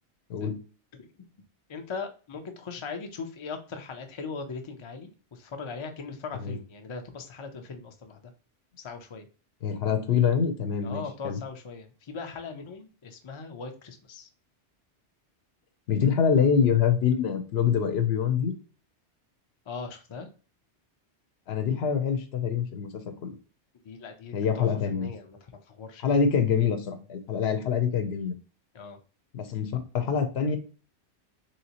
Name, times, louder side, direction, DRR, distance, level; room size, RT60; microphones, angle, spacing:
voice 1, 1.7-8.2 8.8-9.3 10.8-14.3 19.7-20.3 23.8-26.0 28.7-29.0, left 5 dB, 50° left, 5 dB, 0.3 m, -39 dB
voice 2, 9.6-11.4 15.9-18.5 21.5-23.3 24.3-25.1 26.0-28.4 29.3-30.6, left 7 dB, 70° left, 7 dB, 0.8 m, -25 dB
3.2 x 2.8 x 2.8 m, 0.36 s
omnidirectional pair, 1.2 m